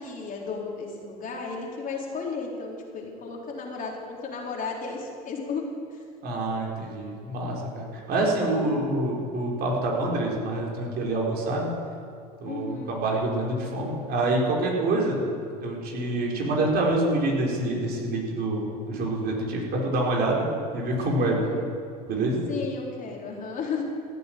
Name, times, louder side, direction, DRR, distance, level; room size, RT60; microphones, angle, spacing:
voice 1, 0.0-5.7 8.7-8.9 12.4-13.0 21.3-21.7 22.5-23.8, left 4 dB, 40° left, -2 dB, 3.9 m, -34 dB
voice 2, 6.2-11.7 12.4-15.2 15.6-20.5 20.7-21.4 22.1-22.4, right 2 dB, 50° right, -2 dB, 4.5 m, -26 dB
15.5 x 8.3 x 9.2 m, 2.4 s
hypercardioid pair, 80°, 21 cm